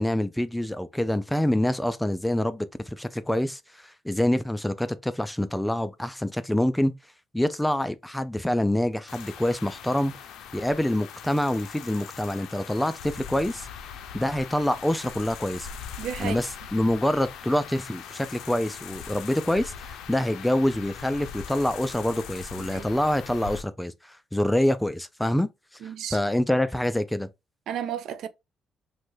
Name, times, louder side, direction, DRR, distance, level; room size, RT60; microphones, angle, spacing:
voice 1, 0.0-6.9 7.3-10.1 10.5-13.7 14.1-15.7 16.2-25.5 25.8-27.3, left 1 dB, 5° left, 0.3 m, -26 dB
sound 1, 9.1-23.6, left 8 dB, 85° left, 0.4 m, -41 dB
voice 2, 16.0-16.4 22.6-22.9 25.8-26.2 27.7-28.3, right 9 dB, 75° right, 0.3 m, -33 dB
3.0 x 2.2 x 3.1 m
cardioid pair, 90°, 0 cm